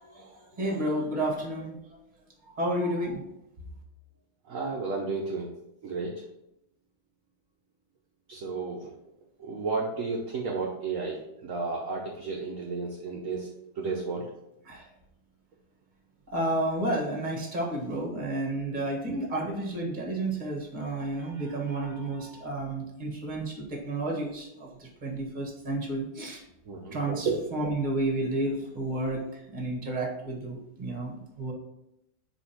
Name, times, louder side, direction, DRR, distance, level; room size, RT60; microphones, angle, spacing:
voice 1, 0.0-1.8 2.5-3.2 14.7-14.9 16.3-26.4 26.9-31.5, right 1 dB, 25° right, 0 dB, 1.4 m, -31 dB
voice 2, 4.5-5.5 5.8-6.1 8.3-8.9 9.4-13.5 13.8-14.2 26.7-27.0 27.2-27.3, right 4 dB, 55° right, -1 dB, 1.0 m, -32 dB
4.9 x 4.5 x 5.8 m, 0.84 s
omnidirectional pair, 2.2 m